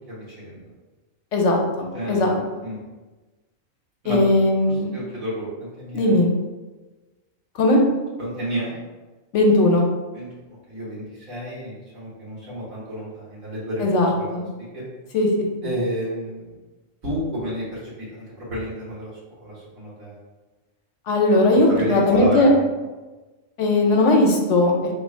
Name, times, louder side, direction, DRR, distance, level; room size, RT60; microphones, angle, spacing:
voice 1, 0.1-0.7 1.9-2.8 4.0-4.2 4.7-6.2 8.2-8.8 10.1-13.9 14.2-14.3 14.7-14.9 15.6-16.6 17.0-20.1 21.7-22.6, equal, 85° right, -8 dB, 2.0 m, -31 dB
voice 2, 1.3-2.3 4.0-4.9 5.9-6.3 7.6-7.8 9.3-9.8 13.8-14.4 15.1-15.3 15.6-15.7 21.1-22.5 23.6-24.7, left 2 dB, 65° left, 0 dB, 1.0 m, -18 dB
3.7 x 2.4 x 4.4 m, 1.2 s
omnidirectional pair, 1.4 m